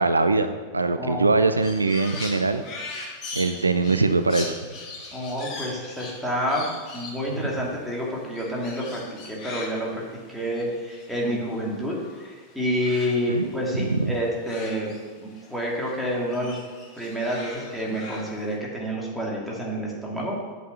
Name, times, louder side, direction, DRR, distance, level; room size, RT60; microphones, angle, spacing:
voice 1, 0.0-2.6 3.3-4.5 13.3-13.5 13.9-14.1, right 3 dB, 80° right, 10 dB, 0.4 m, -22 dB
voice 2, 1.0-1.3 5.1-10.0 10.3-16.6 17.0-20.4, equal, ahead, -4 dB, 2.6 m, -29 dB
Crow, 1.6-12.3 12.5-15.5 15.8-18.5, left 3 dB, 35° left, 2.5 m, -41 dB
7.9 x 6.0 x 6.9 m, 1.5 s
figure-of-eight pair, 90°, 0 cm